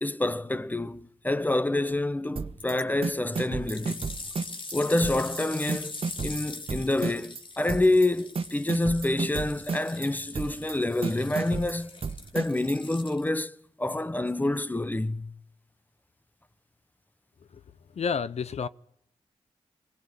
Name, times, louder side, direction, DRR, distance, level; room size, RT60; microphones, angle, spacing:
voice 1, 0.0-4.1 4.7-12.0 12.3-15.3, left 2 dB, 15° left, 1.1 m, -27 dB
sound 1, 2.4-2.7 3.0-4.7 5.0-5.4 5.7-7.4 7.7-8.1 8.4-10.1 10.3-10.7 11.0-12.7, right 5 dB, 55° right, 1.5 m, -32 dB
sound 2, 2.6-2.8 3.3-13.5 14.3-14.4, left 3 dB, 45° left, 2.5 m, -42 dB
voice 2, 17.9-18.7, left 6 dB, 65° left, 0.8 m, -30 dB
24.0 x 19.5 x 8.4 m
cardioid pair, 60°, 12 cm